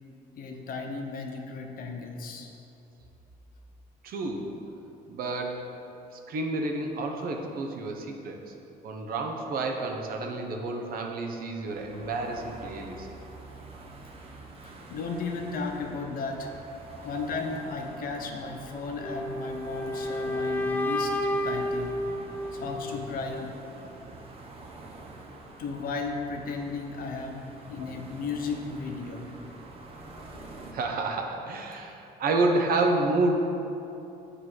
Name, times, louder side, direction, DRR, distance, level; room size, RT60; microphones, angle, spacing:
voice 1, 0.4-2.5 14.6-16.5 17.0-21.1 21.4-22.0 22.5-23.5 25.6-29.3, left 4 dB, 55° left, 3 dB, 0.8 m, -35 dB
voice 2, 4.0-4.5 5.1-5.7 6.3-8.4 8.8-13.1 16.9-17.1 20.3-20.4 27.8-27.9 30.7-33.3, right 2 dB, 60° right, 3 dB, 0.8 m, -29 dB
sound 1, 11.6-30.7, right 2 dB, 35° right, 0.9 m, -46 dB
sound 2, 19.0-23.0, left 1 dB, 10° left, 0.5 m, -31 dB
7.6 x 3.3 x 6.1 m, 2.9 s
cardioid pair, 110°, 17 cm